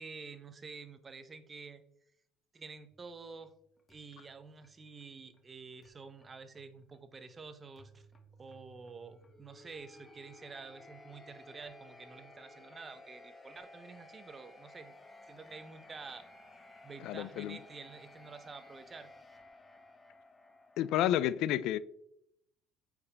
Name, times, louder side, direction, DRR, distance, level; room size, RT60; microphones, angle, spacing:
voice 1, 0.0-1.8 2.5-3.5 3.9-8.1 8.4-15.0 15.3-16.2 16.8-19.1, right 4 dB, 30° right, 0.8 m, -49 dB
sound 1, 2.9-21.0, left 2 dB, 20° left, 1.2 m, -57 dB
voice 2, 17.0-17.6 20.8-21.8, left 12 dB, 70° left, 0.3 m, -30 dB
8.3 x 5.0 x 3.4 m
supercardioid pair, 85°, 0 cm